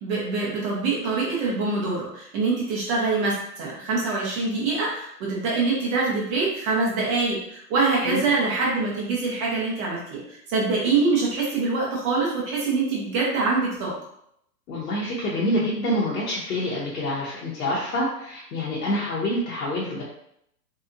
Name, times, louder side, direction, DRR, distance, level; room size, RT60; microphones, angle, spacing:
voice 1, 0.0-14.0, right 3 dB, 20° right, -4 dB, 0.5 m, -24 dB
voice 2, 7.9-8.3 14.7-20.0, left 1 dB, 70° left, -6 dB, 0.9 m, -27 dB
2.7 x 2.3 x 2.5 m, 0.73 s
hypercardioid pair, 125°, 49 cm